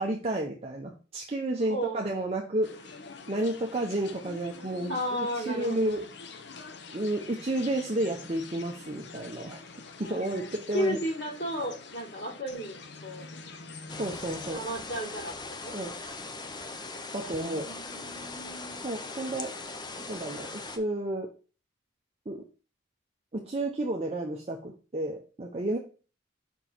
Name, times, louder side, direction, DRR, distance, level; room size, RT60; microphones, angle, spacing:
voice 1, 0.0-2.7 3.3-6.1 6.9-9.6 10.0-11.0 14.0-14.6 15.7-15.9 17.1-17.7 18.8-19.5 20.1-21.3 22.3-22.4 23.3-25.8, right 1 dB, 30° right, 1 dB, 0.7 m, -31 dB
voice 2, 1.6-2.1 4.9-6.0 10.0-13.3 14.5-15.3 15.6-15.7 17.2-18.8, equal, 75° left, -13 dB, 3.8 m, -34 dB
sound 1, 2.6-14.5, left 4 dB, 60° left, 0.7 m, -46 dB
sound 2, 13.9-20.8, left 3 dB, 20° left, 0.5 m, -40 dB
5.5 x 4.5 x 4.3 m, 0.35 s
head